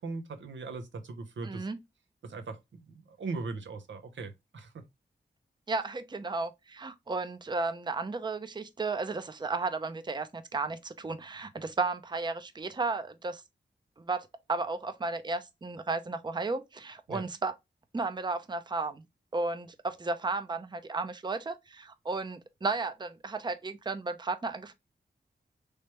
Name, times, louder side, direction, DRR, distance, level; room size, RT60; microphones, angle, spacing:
voice 1, 0.0-1.7 2.2-4.7 17.1-17.3, right 3 dB, 85° right, 0.7 m, -39 dB
voice 2, 1.4-1.8 5.7-13.4 14.0-17.5 17.9-19.0 19.3-24.7, right 3 dB, 25° right, 0.5 m, -34 dB
3.3 x 3.2 x 2.9 m
cardioid pair, 45°, 19 cm